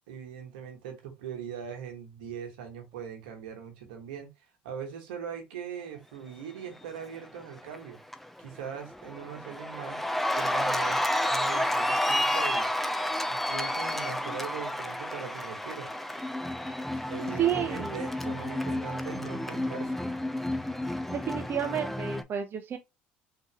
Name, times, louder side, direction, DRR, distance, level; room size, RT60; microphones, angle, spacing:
voice 1, 0.1-4.3 4.6-8.0 8.4-10.0 10.3-12.7 13.3-15.9 17.0-20.0, right 8 dB, 85° right, 1.2 m, -41 dB
Cheering, 7.4-7.8 8.1-22.2, left 1 dB, 5° left, 0.4 m, -31 dB
voice 2, 17.4-18.0 21.1-22.8, right 9 dB, 45° right, 0.6 m, -30 dB
3.7 x 2.8 x 2.8 m
hypercardioid pair, 75°, 5 cm